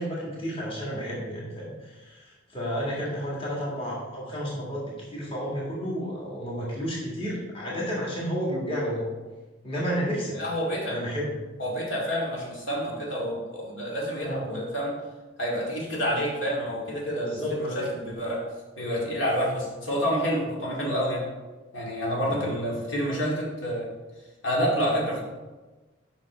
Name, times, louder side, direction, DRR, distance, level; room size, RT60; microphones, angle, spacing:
voice 1, 0.0-9.1 9.6-10.4 10.9-11.3 14.2-14.4 17.2-17.9 22.3-22.5, equal, 30° left, -5 dB, 2.0 m, -31 dB
voice 2, 10.3-11.0 11.6-15.0 15.4-18.4 18.8-21.2 21.7-23.9 24.4-25.2, equal, 75° left, -4 dB, 2.3 m, -28 dB
7.6 x 5.9 x 4.4 m, 1.2 s
head